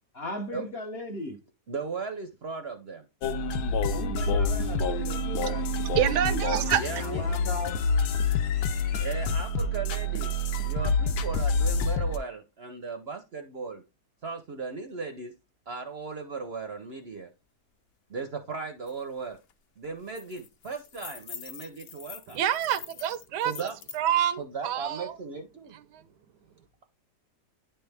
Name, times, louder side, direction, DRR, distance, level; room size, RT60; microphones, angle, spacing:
voice 1, 0.1-1.4 3.9-5.7 6.9-7.8, left 1 dB, 50° left, 0.8 m, -37 dB
voice 2, 1.7-3.1 6.8-7.2 9.0-10.3 10.6-13.8 14.2-15.3 15.7-17.3 18.1-19.4 19.8-22.4 23.4-23.7 24.4-25.8, right 4 dB, 55° right, 0.7 m, -37 dB
sound 1, 3.2-12.2, left 2 dB, 75° left, 1.1 m, -27 dB
voice 3, 5.9-6.8 22.3-25.2 25.9-26.1, right 11 dB, 85° right, 1.2 m, -27 dB
sound 2, 18.9-19.0 19.3-19.5 19.8-24.0, left 7 dB, 90° left, 0.5 m, -45 dB
10.0 x 3.4 x 3.3 m
omnidirectional pair, 1.8 m